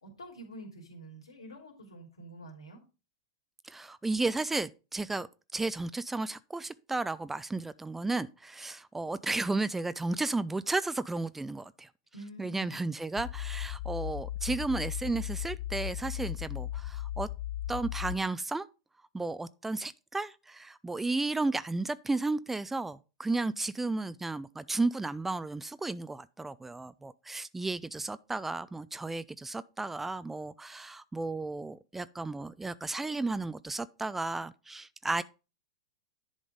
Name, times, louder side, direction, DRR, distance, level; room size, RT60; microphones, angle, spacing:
voice 1, 0.0-2.8 12.1-12.9, right 1 dB, 75° left, 3.1 m, -47 dB
voice 2, 3.6-5.3 5.5-11.9 12.4-17.3 17.7-18.7 19.1-35.2, right 3 dB, 10° right, 0.3 m, -33 dB
sound 1, 13.2-18.2, left 13 dB, 55° left, 0.8 m, -36 dB
10.5 x 3.9 x 5.1 m
figure-of-eight pair, 95°, 3 cm